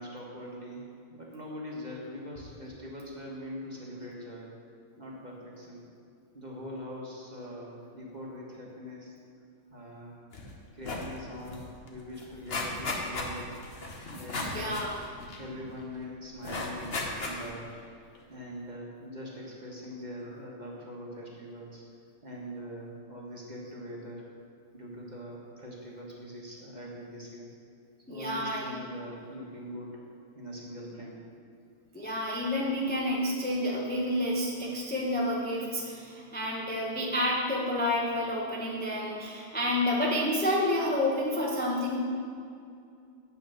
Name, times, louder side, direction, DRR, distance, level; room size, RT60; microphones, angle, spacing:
voice 1, 0.0-4.5 5.0-5.8 6.3-9.1 9.7-10.2 10.7-13.5 14.1-14.8 15.4-17.6 18.3-21.8 22.2-24.3 24.7-27.5 28.1-30.0 30.3-31.2, equal, 25° right, -3 dB, 1.6 m, -42 dB
sound 1, 10.3-10.5 10.8-11.1 11.5-11.6 11.9-15.8 16.4-17.7 18.1-18.2, left 2 dB, 40° left, 1.1 m, -36 dB
voice 2, 14.4-15.0 28.1-28.7 31.9-42.0, left 1 dB, 10° left, -4 dB, 0.7 m, -29 dB
8.8 x 6.4 x 6.5 m, 2.4 s
omnidirectional pair, 2.0 m